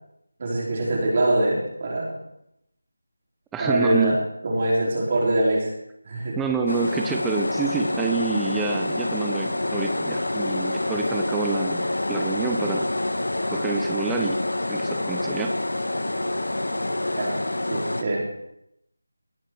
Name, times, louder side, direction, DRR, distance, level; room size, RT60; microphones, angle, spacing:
voice 1, 0.4-2.1 3.6-4.2 4.4-5.7 6.0-6.4 17.1-18.3, right 1 dB, 35° right, -3 dB, 4.3 m, -23 dB
voice 2, 3.5-4.2 6.4-12.9 13.5-14.4 14.7-15.5, right 4 dB, 5° right, 3 dB, 0.7 m, -27 dB
sound 1, 6.7-18.0, left 1 dB, 80° left, 1.3 m, -27 dB
18.5 x 6.6 x 4.7 m, 0.81 s
figure-of-eight pair, 170°, 0 cm